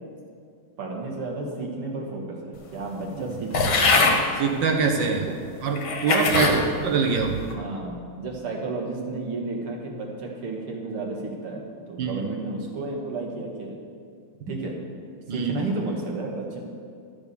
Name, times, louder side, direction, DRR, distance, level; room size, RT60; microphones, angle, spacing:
voice 1, 0.8-4.2 5.2-5.3 6.3-6.6 7.5-13.8 14.5-14.8 15.3-16.6, right 3 dB, 80° right, -1 dB, 2.6 m, -32 dB
sound 1, 3.5-4.2 5.0-5.1 5.8-6.6 7.1-7.5, left 3 dB, 65° left, 2.1 m, -22 dB
voice 2, 4.4-5.3 5.6-7.4 12.0-12.2 15.3-15.5, right 5 dB, 65° right, 2 dB, 1.6 m, -24 dB
12.0 x 7.1 x 6.9 m, 2.2 s
omnidirectional pair, 2.4 m